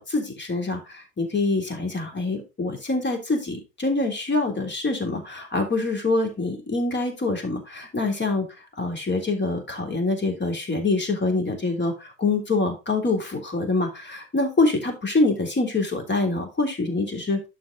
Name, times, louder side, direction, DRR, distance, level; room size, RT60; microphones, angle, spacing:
voice 1, 0.0-8.5 8.8-17.4, left 3 dB, 25° left, 4 dB, 3.3 m, -25 dB
11.0 x 4.9 x 3.9 m, 0.26 s
figure-of-eight pair, 55°, 41 cm